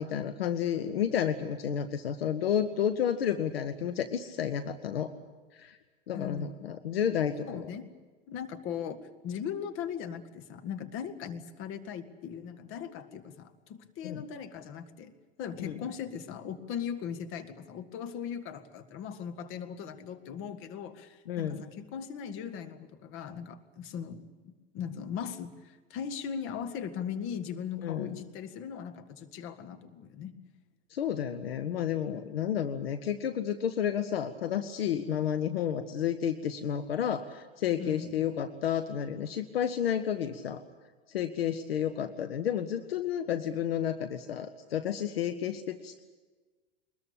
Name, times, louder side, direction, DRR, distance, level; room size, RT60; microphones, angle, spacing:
voice 1, 0.0-5.1 5.5-5.8 6.1-7.7 14.0-14.2 15.6-15.8 21.3-21.6 27.8-28.1 30.9-40.6 41.1-46.0, left 9 dB, 65° left, 10 dB, 1.3 m, -31 dB
voice 2, 6.1-6.8 7.5-7.8 8.3-9.0 9.2-30.4 37.8-38.2, left 8 dB, 40° left, 9 dB, 1.9 m, -39 dB
22.5 x 21.0 x 8.7 m, 1.3 s
figure-of-eight pair, 85°, 32 cm